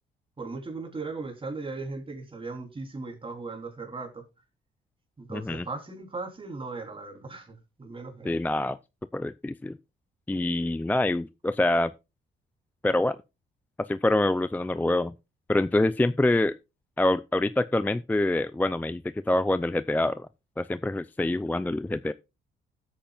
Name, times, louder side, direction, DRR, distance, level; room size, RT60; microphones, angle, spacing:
voice 1, 0.4-4.2 5.2-8.4, right 3 dB, 25° right, 3.8 m, -38 dB
voice 2, 5.3-5.7 8.2-8.8 9.1-9.8 10.3-11.9 12.8-13.2 13.9-15.1 15.5-16.5 17.0-20.3 20.6-22.1, left 2 dB, 10° left, 0.4 m, -25 dB
14.5 x 8.8 x 2.4 m
cardioid pair, 90°, 20 cm